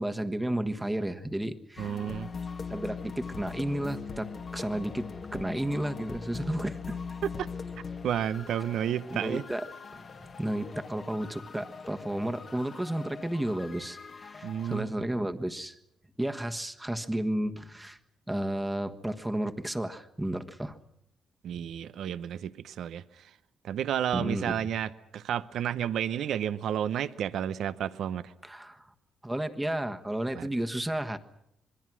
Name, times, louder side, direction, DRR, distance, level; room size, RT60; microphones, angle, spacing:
voice 1, 0.0-1.9 2.7-7.0 9.1-9.7 9.9-15.7 16.2-18.0 18.3-20.8 24.1-24.7 28.4-28.9 29.2-31.2, right 1 dB, 10° right, 1.4 m, -32 dB
sound 1, 1.8-14.8, left 5 dB, 45° left, 1.4 m, -41 dB
voice 2, 1.8-2.3 7.2-7.5 8.0-9.4 14.4-15.1 21.4-23.3 23.6-28.3 30.4-30.5, right 9 dB, 70° right, 0.8 m, -31 dB
26.5 x 21.5 x 6.2 m
cardioid pair, 90°, 0 cm